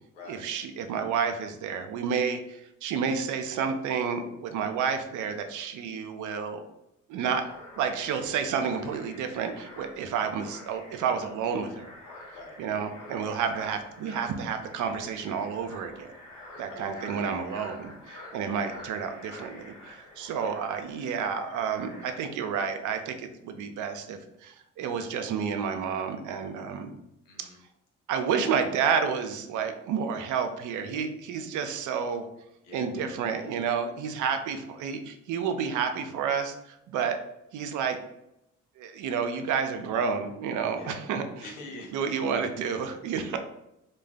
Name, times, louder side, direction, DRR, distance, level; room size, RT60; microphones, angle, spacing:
voice 1, 0.3-6.7 7.1-7.5 7.8-11.9 12.6-16.1 16.6-26.9 27.4-27.5 28.1-32.2 32.7-37.2 37.5-38.0 38.8-41.5 41.9-43.4, right 6 dB, 55° right, 7 dB, 0.5 m, -30 dB
sound 1, 7.4-22.3, left 1 dB, 60° left, 1.0 m, -48 dB
voice 2, 27.3-27.6 32.6-32.9 40.8-41.0 41.4-42.0, left 2 dB, 90° left, 0 dB, 0.6 m, -44 dB
2.4 x 2.2 x 3.4 m, 0.84 s
hypercardioid pair, 45°, 37 cm